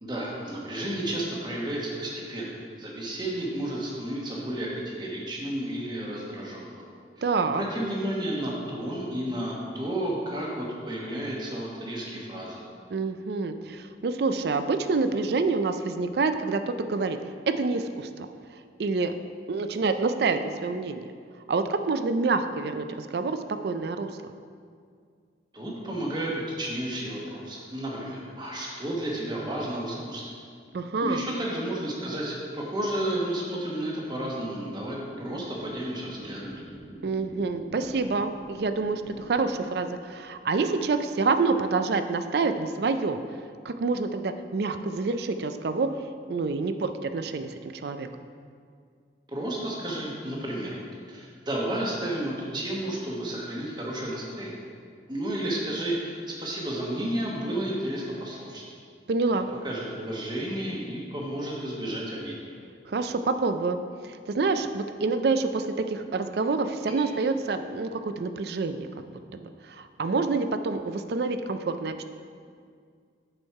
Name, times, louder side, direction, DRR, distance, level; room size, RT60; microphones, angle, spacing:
voice 1, 0.0-2.5 2.8-6.8 7.4-12.6 25.5-30.2 31.0-36.6 49.3-54.6 55.1-58.6 59.6-62.3 67.0-67.1, right 1 dB, 25° right, -4 dB, 1.2 m, -32 dB
voice 2, 7.2-7.6 12.9-17.2 17.5-18.3 18.8-19.1 19.5-21.0 21.5-24.3 30.7-31.3 37.0-43.2 43.6-45.9 46.3-48.1 59.1-59.5 62.9-63.8 64.0-68.9 69.3-72.0, right 4 dB, 60° right, 9 dB, 0.4 m, -27 dB
sound 1, 33.3-40.5, right 1 dB, 20° left, 1.3 m, -47 dB
7.6 x 4.4 x 4.7 m, 2.2 s
head